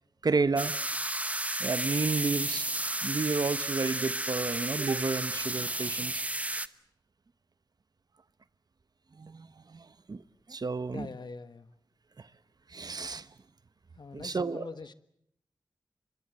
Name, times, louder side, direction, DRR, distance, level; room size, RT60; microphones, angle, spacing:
voice 1, 0.2-0.7 1.6-2.7 3.0-6.2 6.5-6.6 9.2-10.2 10.5-11.1 12.2-12.3 12.7-13.3 14.1-14.7, right 4 dB, 55° right, 1.0 m, -31 dB
sound 1, 0.6-6.7, right 1 dB, 15° right, 1.0 m, -32 dB
voice 2, 10.9-11.7 13.9-14.9, left 4 dB, 65° left, 1.5 m, -43 dB
25.5 x 24.0 x 7.6 m
cardioid pair, 55°, 8 cm